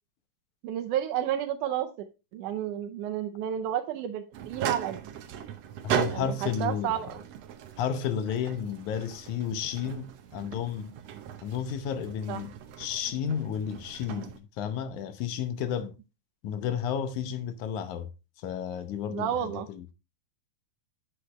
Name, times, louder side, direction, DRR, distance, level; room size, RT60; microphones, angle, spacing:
voice 1, 0.6-2.1 2.3-5.0 6.1-7.2 12.3-12.4 19.1-19.7, right 10 dB, 85° right, 2.3 m, -31 dB
sound 1, 4.3-14.4, right 9 dB, 65° right, 1.8 m, -37 dB
voice 2, 5.8-6.9 7.8-11.0 11.4-16.0 16.4-18.1 18.4-19.9, left 8 dB, 80° left, 2.3 m, -32 dB
9.9 x 6.6 x 3.2 m
omnidirectional pair, 3.5 m